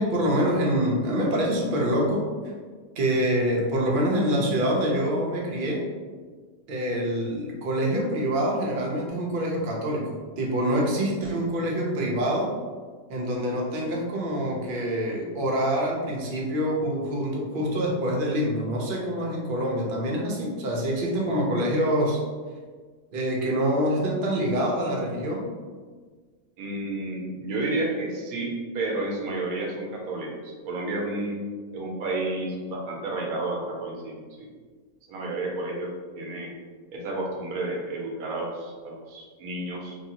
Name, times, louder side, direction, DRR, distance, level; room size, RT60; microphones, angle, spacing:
voice 1, 0.0-2.2 2.9-5.8 6.7-12.5 13.1-22.2 23.1-25.4, equal, 50° right, -2 dB, 0.6 m, -25 dB
voice 2, 26.6-31.5 31.7-34.5 35.1-36.5 36.9-40.0, right 2 dB, 85° right, -1 dB, 1.1 m, -31 dB
3.1 x 2.7 x 2.7 m, 1.5 s
omnidirectional pair, 1.5 m